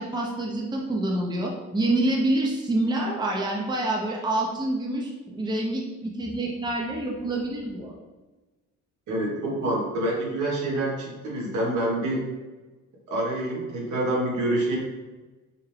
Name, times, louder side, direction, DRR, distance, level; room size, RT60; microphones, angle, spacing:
voice 1, 0.0-7.9, right 1 dB, 15° right, -1 dB, 0.6 m, -27 dB
voice 2, 9.1-12.2 13.1-14.8, right 1 dB, 75° right, -4 dB, 1.5 m, -27 dB
4.9 x 2.2 x 3.2 m, 1.2 s
cardioid pair, 90°, 30 cm